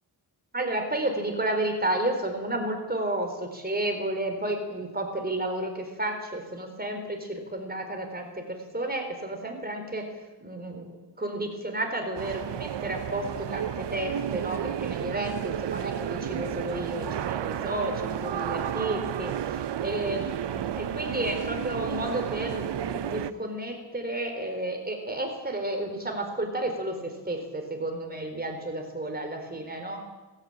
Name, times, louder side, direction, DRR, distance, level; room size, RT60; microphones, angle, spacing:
voice 1, 0.5-10.1 10.4-19.6 19.8-30.0, right 1 dB, 20° right, 4 dB, 4.3 m, -32 dB
sound 1, 12.2-23.3, right 10 dB, 70° right, 0.8 m, -32 dB
19.0 x 16.0 x 8.8 m, 1.2 s
wide cardioid pair, 100°, 43 cm